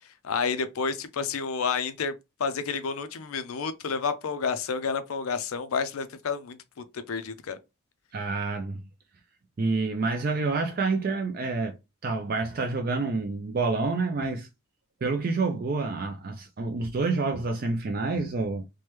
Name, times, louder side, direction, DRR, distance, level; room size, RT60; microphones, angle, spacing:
voice 1, 0.2-2.1 2.4-6.6 6.9-7.6, left 5 dB, 85° left, 0.5 m, -30 dB
voice 2, 8.1-8.8 9.6-11.7 12.0-14.5 15.0-18.6, right 3 dB, 45° right, 0.4 m, -28 dB
3.2 x 2.1 x 2.9 m
head